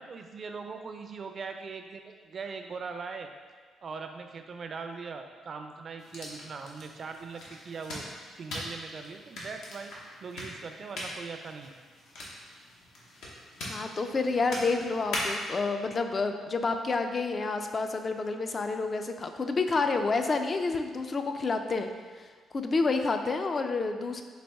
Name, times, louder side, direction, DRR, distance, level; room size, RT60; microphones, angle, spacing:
voice 1, 0.0-3.3 3.8-8.0 8.4-9.9 10.2-11.7, right 5 dB, 50° right, 6 dB, 0.4 m, -40 dB
sound 1, 6.0-15.6, left 1 dB, 85° left, 0.9 m, -40 dB
voice 2, 13.7-21.9 22.2-22.3 22.5-24.2, left 3 dB, 35° left, 6 dB, 0.3 m, -29 dB
4.1 x 3.0 x 3.4 m, 1.5 s
cardioid pair, 90°, 0 cm